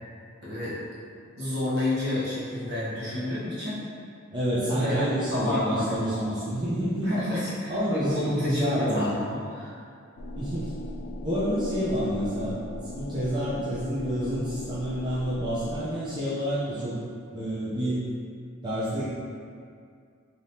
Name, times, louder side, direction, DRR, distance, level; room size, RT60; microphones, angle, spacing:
voice 1, 0.4-0.8 1.4-3.8 4.7-6.4 7.0-9.8, left 1 dB, 50° right, -9 dB, 1.0 m, -29 dB
voice 2, 4.3-7.1 7.7-9.2 10.3-10.7 11.2-12.6 12.9-17.0 17.3-18.1 18.6-19.0, equal, 20° right, -11 dB, 0.5 m, -28 dB
sound 1, 10.2-15.8, left 2 dB, 75° left, 0.3 m, -39 dB
3.4 x 2.7 x 2.7 m, 2.3 s
head